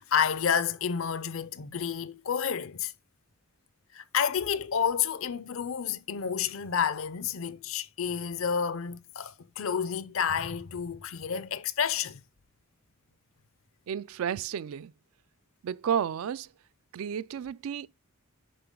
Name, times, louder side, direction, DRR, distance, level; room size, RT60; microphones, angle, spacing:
voice 1, 0.0-2.9 3.9-12.2, left 7 dB, 65° left, 0.6 m, -30 dB
voice 2, 13.9-14.9 15.6-16.5 16.9-17.9, right 8 dB, 70° right, 0.3 m, -32 dB
10.5 x 3.9 x 3.7 m
head